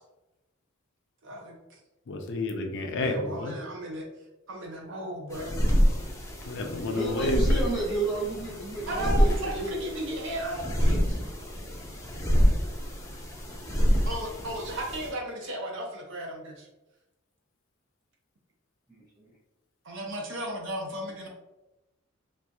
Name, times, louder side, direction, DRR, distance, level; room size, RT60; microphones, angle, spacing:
voice 1, 1.2-1.8 3.0-4.1 4.5-5.6 8.9-11.2 14.1-16.7 19.8-21.3, right 1 dB, 65° right, 0 dB, 0.6 m, -35 dB
voice 2, 2.1-3.5 6.5-7.4, left 2 dB, 60° left, 3 dB, 0.5 m, -30 dB
sound 1, 5.3-15.1, equal, 15° left, 0.5 m, -27 dB
voice 3, 6.9-9.7 18.9-19.3, right 3 dB, 20° right, -7 dB, 1.5 m, -32 dB
4.2 x 2.5 x 2.3 m, 0.99 s
head